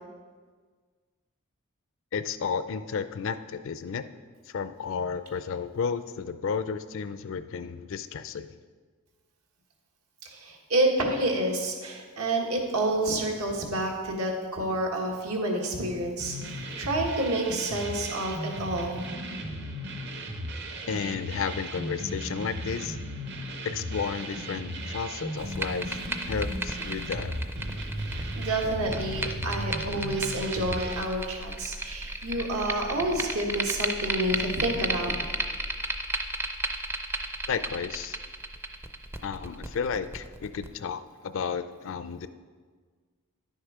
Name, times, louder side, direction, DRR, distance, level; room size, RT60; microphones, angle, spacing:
voice 1, 2.1-4.1 4.5-8.6 20.9-23.0 23.6-26.0 26.3-27.3 37.5-38.2 39.2-42.3, left 6 dB, 60° left, 12 dB, 0.4 m, -32 dB
voice 2, 10.3-19.0 28.1-35.1, right 1 dB, 80° right, 1 dB, 1.5 m, -29 dB
sound 1, 16.2-31.0, right 1 dB, 50° right, 0.9 m, -36 dB
sound 2, 25.4-40.7, right 2 dB, 10° right, 0.4 m, -34 dB
10.5 x 6.4 x 4.8 m, 1.5 s
head